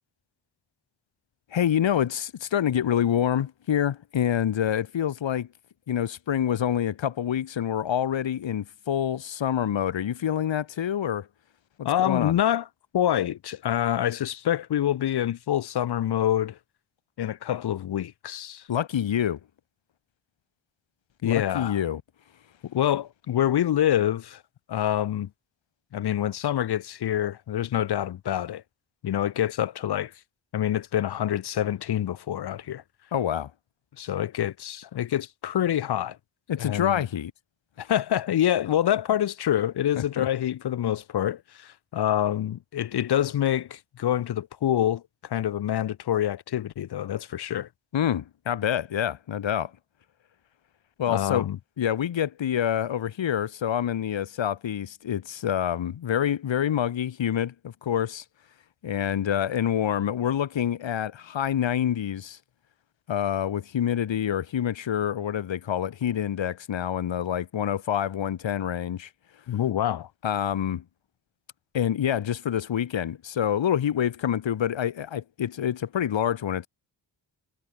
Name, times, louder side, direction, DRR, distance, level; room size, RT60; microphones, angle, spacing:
voice 1, 1.5-5.5 5.9-11.3 11.8-12.4 18.7-19.4 21.2-22.0 33.1-33.5 36.5-37.3 40.0-40.3 47.9-49.7 51.0-51.4 51.8-58.2 58.8-62.4 63.1-69.1 70.2-70.8 71.7-76.7, left 9 dB, 80° left, 1.2 m, -27 dB
voice 2, 11.8-12.6 12.9-16.6 17.2-18.6 21.2-21.8 22.6-24.4 24.7-25.3 25.9-28.6 29.0-30.1 30.5-32.8 34.0-36.2 36.6-37.0 37.8-47.7 51.1-51.6 69.5-70.1, left 11 dB, 60° left, 0.6 m, -26 dB
wide cardioid pair, 170°, 44 cm